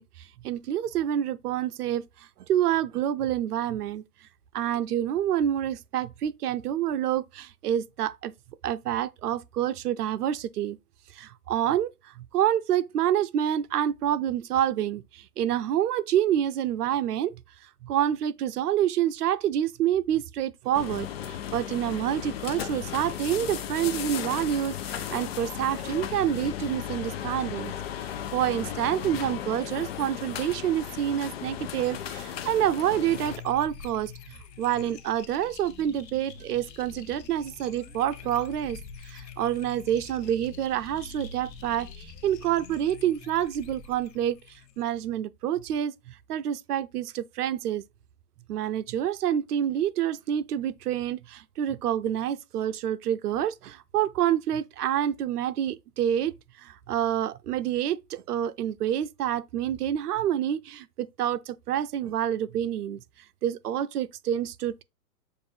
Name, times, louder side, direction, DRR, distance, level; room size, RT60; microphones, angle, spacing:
voice 1, 0.0-2.1 2.5-4.0 4.5-8.3 8.6-10.8 11.1-17.3 17.8-27.7 28.0-38.8 39.0-44.4 44.8-47.8 48.5-56.3 56.6-63.0 63.4-64.8, right 10 dB, 70° right, 0.7 m, -28 dB
sound 1, 20.7-33.4, left 10 dB, 40° left, 0.5 m, -35 dB
sound 2, 33.0-45.0, left 6 dB, 90° left, 1.0 m, -45 dB
6.7 x 2.6 x 2.7 m
hypercardioid pair, 150°, 48 cm